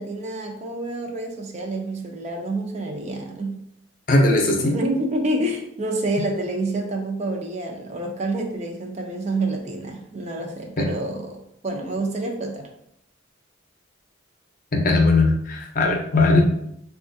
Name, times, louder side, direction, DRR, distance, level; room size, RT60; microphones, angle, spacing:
voice 1, 0.0-3.6 4.5-12.7, right 2 dB, 35° right, 3 dB, 0.4 m, -28 dB
voice 2, 4.1-4.7 10.8-10.9 14.7-16.4, left 2 dB, 45° left, 2 dB, 0.6 m, -18 dB
4.1 x 2.4 x 2.6 m, 0.75 s
head